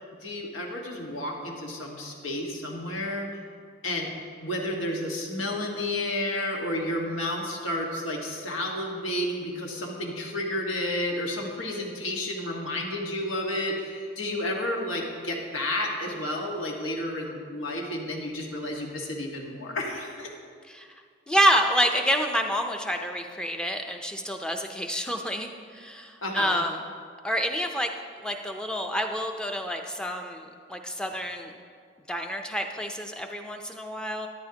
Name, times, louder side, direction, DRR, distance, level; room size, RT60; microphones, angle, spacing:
voice 1, 0.2-3.3 3.8-4.1 4.4-20.3 26.2-26.6, left 1 dB, 90° left, 0 dB, 1.6 m, -31 dB
voice 2, 21.3-26.7 27.2-27.9 28.2-31.5 32.1-34.3, equal, 5° left, 4 dB, 0.5 m, -28 dB
13.5 x 10.5 x 2.9 m, 2.1 s
head